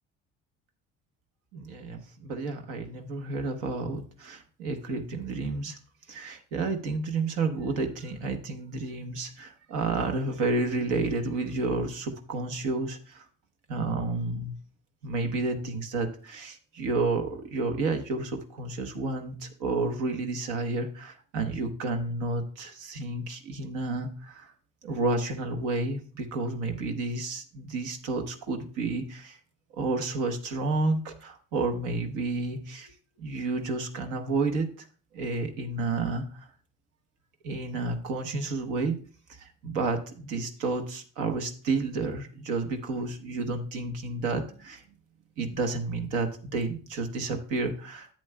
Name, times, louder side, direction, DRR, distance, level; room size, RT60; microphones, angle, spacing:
voice 1, 1.5-5.8 6.1-13.3 13.7-14.6 15.0-24.5 24.8-29.4 29.7-32.9 33.2-34.9 35.1-36.5 37.4-39.0 39.3-45.0 45.4-48.1, right 3 dB, 85° right, 5 dB, 1.1 m, -31 dB
10.5 x 7.7 x 2.2 m, 0.41 s
supercardioid pair, 75°, 31 cm